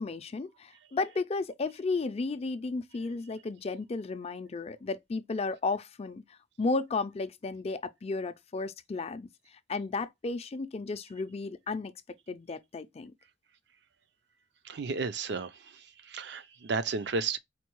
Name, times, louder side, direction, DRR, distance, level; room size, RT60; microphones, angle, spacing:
voice 1, 0.0-6.2 6.6-9.3 9.7-11.9 12.3-13.1, left 3 dB, 35° left, 0.4 m, -33 dB
voice 2, 14.6-17.4, right 4 dB, 65° right, 0.5 m, -33 dB
4.3 x 2.2 x 3.0 m
head